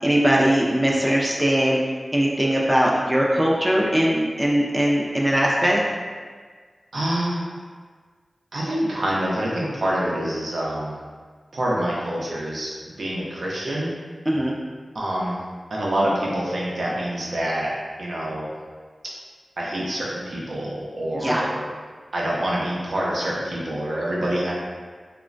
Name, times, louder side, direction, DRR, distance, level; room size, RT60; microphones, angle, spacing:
voice 1, 0.0-1.8 2.1-5.8 14.3-14.6 21.2-21.4, equal, 15° right, -3 dB, 0.4 m, -20 dB
voice 2, 6.9-7.5 8.5-10.9 11.5-12.7 13.0-13.9 14.9-15.4 15.7-17.7 18.0-18.5 19.0-19.1 19.6-21.6 22.1-24.5, right 1 dB, 80° right, -5 dB, 0.6 m, -26 dB
3.0 x 2.1 x 2.4 m, 1.5 s
wide cardioid pair, 70°, 0 cm